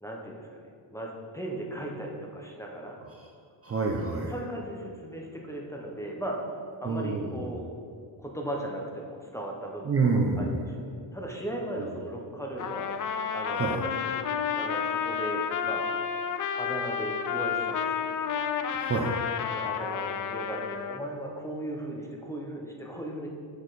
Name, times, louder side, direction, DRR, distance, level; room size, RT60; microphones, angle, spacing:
voice 1, 0.0-3.0 4.3-6.4 6.8-7.6 8.2-10.0 10.4-14.2 14.5-15.8 16.6-18.2 19.5-23.3, right 1 dB, 5° left, -1 dB, 0.8 m, -37 dB
voice 2, 3.6-4.3 6.8-7.6 9.8-10.6 11.8-11.9 13.5-13.8 18.7-19.1, right 4 dB, 30° right, 0 dB, 0.6 m, -28 dB
Trumpet, 12.6-21.0, left 7 dB, 45° left, 0.4 m, -31 dB
7.0 x 6.5 x 4.0 m, 2.3 s
cardioid pair, 145°, 48 cm